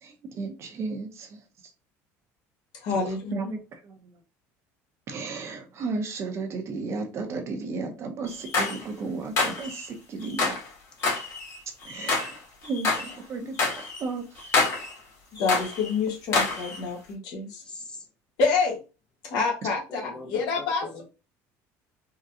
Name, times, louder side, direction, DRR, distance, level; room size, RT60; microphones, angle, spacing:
voice 1, 0.0-1.4 3.3-4.1 5.1-10.6 11.8-14.5, right 3 dB, 40° right, 0.7 m, -34 dB
voice 2, 2.7-3.5 15.4-17.6 18.4-18.8 19.2-21.0, left 4 dB, 70° left, 1.4 m, -27 dB
sound 1, 8.3-8.8 9.4-9.9 10.2-10.7 11.0-12.4 12.6-13.1 13.6-14.0 14.4-14.9 15.4-15.9 16.3-16.8, left 3 dB, 45° left, 1.7 m, -27 dB
voice 3, 17.4-18.0 20.0-21.0, left 2 dB, 15° left, 0.7 m, -42 dB
3.7 x 2.3 x 2.7 m
cardioid pair, 125°, 7 cm